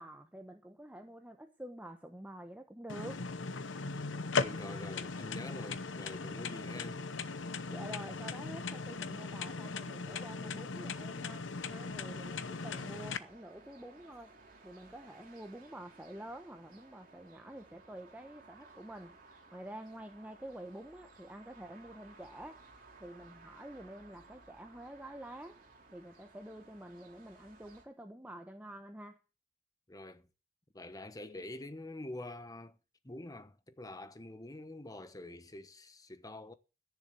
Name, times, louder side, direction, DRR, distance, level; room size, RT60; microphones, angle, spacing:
voice 1, 0.0-3.3 7.7-14.4 14.6-19.2 19.5-22.6 23.0-25.6 25.9-29.2, right 1 dB, 10° right, 1.0 m, -48 dB
Car indicator, 2.9-13.2, left 4 dB, 85° left, 0.9 m, -38 dB
voice 2, 4.4-7.1 29.9-30.3 30.7-32.8 33.0-36.5, left 1 dB, 20° left, 1.1 m, -46 dB
sound 1, 11.6-27.9, right 3 dB, 50° right, 3.7 m, -59 dB
14.0 x 7.2 x 7.7 m
head